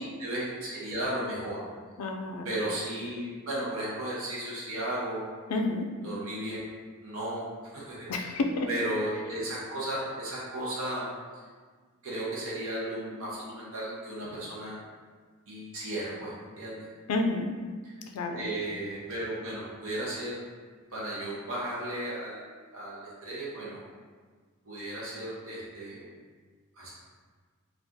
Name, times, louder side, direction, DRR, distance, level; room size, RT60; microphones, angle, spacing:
voice 1, 0.0-1.6 2.4-5.3 6.0-6.7 7.0-8.4 8.7-11.0 11.3-11.4 12.0-14.8 15.5-16.9 17.8-18.1 18.3-20.4 20.9-23.8 24.7-26.0 26.7-26.9, right 1 dB, 65° right, -7 dB, 0.7 m, -35 dB
voice 2, 2.0-2.5 5.5-5.9 8.1-8.7 17.1-17.6 18.1-18.5, left 2 dB, 80° left, 4 dB, 0.4 m, -29 dB
2.7 x 2.4 x 3.5 m, 1.5 s
head